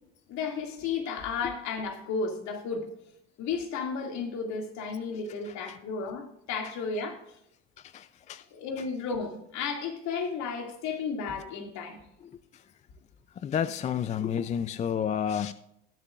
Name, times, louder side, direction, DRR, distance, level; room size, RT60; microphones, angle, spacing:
voice 1, 0.3-2.9 3.4-7.2 8.5-12.0, left 5 dB, 55° left, 2.3 m, -33 dB
voice 2, 7.9-8.4 13.4-15.5, left 8 dB, 20° left, 0.4 m, -30 dB
19.5 x 6.6 x 2.4 m
supercardioid pair, 95°, 33 cm